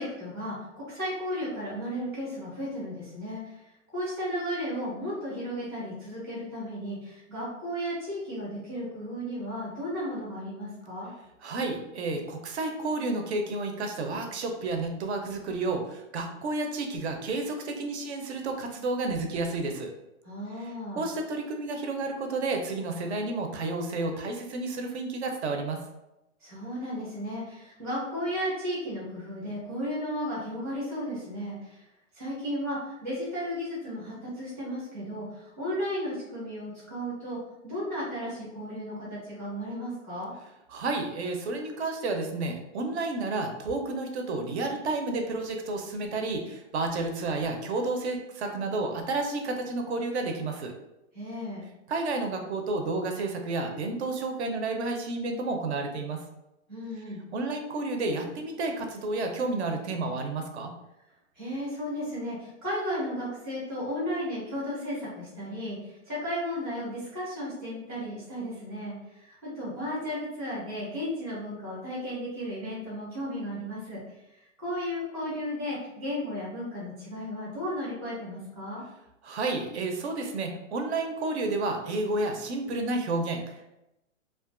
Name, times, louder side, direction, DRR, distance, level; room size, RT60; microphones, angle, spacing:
voice 1, 0.0-3.6 3.9-11.1 20.2-21.1 26.4-31.8 32.1-37.4 37.6-40.3 51.1-51.6 56.7-57.2 61.3-74.0 74.6-78.8, equal, 5° left, -13 dB, 0.4 m, -34 dB
voice 2, 11.4-19.9 20.6-25.8 40.7-50.7 51.9-56.2 57.3-60.7 79.2-83.7, right 3 dB, 60° right, 4 dB, 0.5 m, -31 dB
2.3 x 2.3 x 2.4 m, 0.90 s
hypercardioid pair, 150°, 38 cm